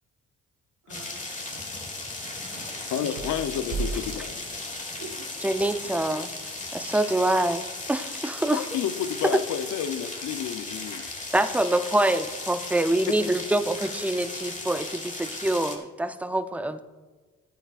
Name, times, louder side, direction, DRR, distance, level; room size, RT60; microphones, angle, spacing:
voice 1, 0.8-3.3 5.0-5.4 7.1-7.2, right 3 dB, 55° right, -1 dB, 1.3 m, -48 dB
sound 1, 0.9-15.8, left 2 dB, 25° left, 1.6 m, -36 dB
voice 2, 2.9-4.4 8.5-11.1 13.1-13.2, left 9 dB, 75° left, 10 dB, 0.8 m, -30 dB
sound 2, 3.0-5.2, right 4 dB, 90° right, 2.0 m, -36 dB
voice 3, 5.4-6.3 6.7-8.6 11.3-16.8, right 1 dB, 5° right, 10 dB, 0.5 m, -25 dB
15.0 x 8.9 x 2.5 m, 1.3 s
cardioid pair, 90°, 30 cm